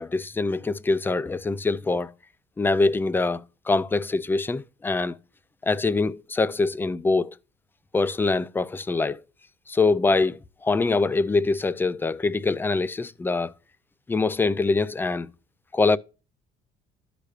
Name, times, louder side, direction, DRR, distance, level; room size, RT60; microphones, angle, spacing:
voice 1, 0.0-2.1 2.6-5.2 5.6-7.3 7.9-9.2 9.7-13.5 14.1-15.3 15.7-16.0, left 3 dB, 10° left, 0.4 m, -24 dB
13.0 x 5.0 x 2.4 m
cardioid pair, 110°, 17 cm